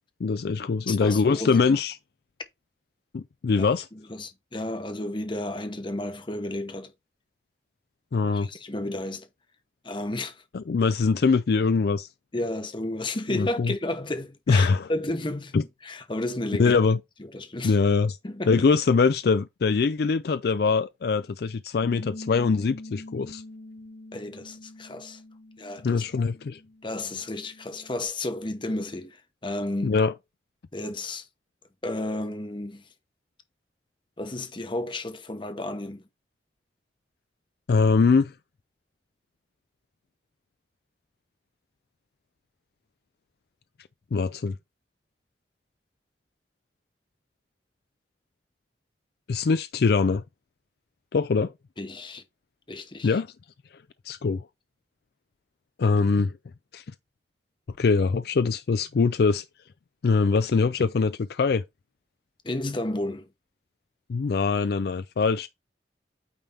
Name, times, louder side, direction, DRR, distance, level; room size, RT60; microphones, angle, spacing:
voice 1, 0.2-2.0 3.1-3.9 8.1-8.5 10.5-12.1 13.3-13.7 14.5-14.9 15.5-15.6 16.6-17.0 17.6-18.2 18.5-23.4 25.8-26.6 29.8-30.1 37.7-38.3 44.1-44.6 49.3-50.2 51.1-51.5 53.0-53.3 54.1-54.4 55.8-56.3 56.7-56.8 57.8-59.4 60.0-61.6 64.1-65.5, left 4 dB, 60° left, 0.4 m, -23 dB
voice 2, 0.9-1.6 3.6-6.9 8.2-9.3 9.8-10.4 12.3-15.5 15.8-16.7 17.3-17.8 18.2-18.5 24.1-25.2 25.6-26.0 26.8-30.0 30.7-31.3 31.8-32.8 34.2-36.0 51.8-52.2 52.7-53.2 62.4-63.3, left 1 dB, 30° left, 0.9 m, -32 dB
Bass guitar, 21.8-28.1, left 1 dB, 80° left, 3.0 m, -44 dB
8.9 x 3.5 x 4.1 m
head